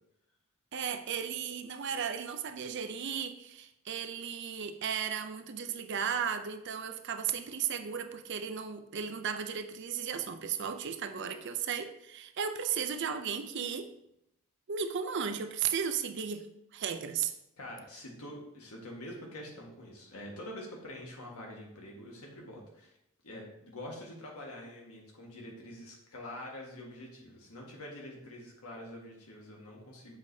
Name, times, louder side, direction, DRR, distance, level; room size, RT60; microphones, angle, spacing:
voice 1, 0.7-13.9 14.7-16.5 16.7-17.3, right 7 dB, 55° right, 8 dB, 0.5 m, -35 dB
voice 2, 17.6-22.9 23.2-30.2, left 1 dB, 90° left, -1 dB, 1.6 m, -46 dB
7.3 x 4.8 x 2.8 m, 0.80 s
head